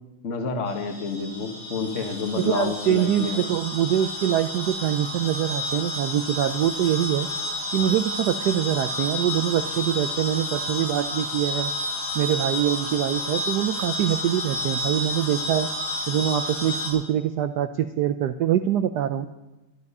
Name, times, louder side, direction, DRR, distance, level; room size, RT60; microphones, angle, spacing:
voice 1, 0.2-3.5, left 4 dB, 40° left, 4 dB, 1.5 m, -29 dB
sound 1, 0.7-16.9, left 1 dB, 75° left, 5.4 m, -31 dB
voice 2, 2.4-7.3 7.7-11.7 12.1-15.7 16.1-19.3, right 11 dB, 80° right, 9 dB, 0.9 m, -24 dB
12.5 x 12.0 x 5.4 m, 1.0 s
omnidirectional pair, 2.3 m